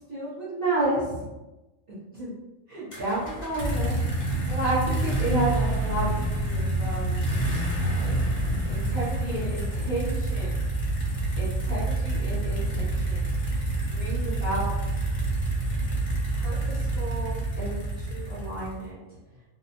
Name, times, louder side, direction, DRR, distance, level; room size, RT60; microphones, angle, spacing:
voice 1, 0.1-1.3 1.9-2.3 2.7-7.2 7.8-10.6 11.4-13.3 13.9-14.7 16.4-19.0, right 1 dB, 45° right, -12 dB, 1.0 m, -32 dB
sound 1, 2.9-18.9, right 2 dB, 45° left, 0.6 m, -27 dB
2.6 x 2.0 x 2.8 m, 1.1 s
omnidirectional pair, 1.4 m